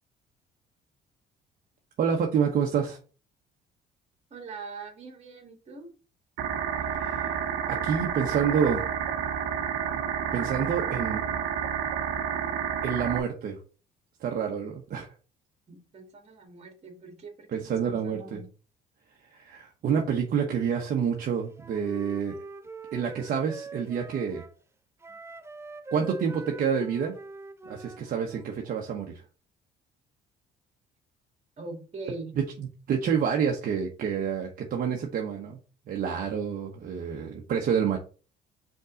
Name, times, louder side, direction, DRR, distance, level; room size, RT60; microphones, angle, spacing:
voice 1, 2.0-3.0 6.9-8.8 10.3-11.2 12.8-13.6 14.2-15.1 17.5-18.4 19.2-22.4 22.9-24.4 25.9-27.1 27.6-29.2 32.6-35.6 35.9-38.0, right 7 dB, 55° right, 1 dB, 1.1 m, -28 dB
voice 2, 4.3-5.9 15.7-17.5 17.8-18.5 31.6-32.4, right 3 dB, 40° right, 3 dB, 2.2 m, -42 dB
sound 1, 6.4-13.2, right 8 dB, 75° right, 1.0 m, -30 dB
Wind instrument woodwind instrument, 21.6-24.6 25.0-28.5, right 3 dB, 15° right, 0.5 m, -44 dB
5.3 x 3.7 x 5.1 m, 0.36 s
cardioid pair, 110°, 17 cm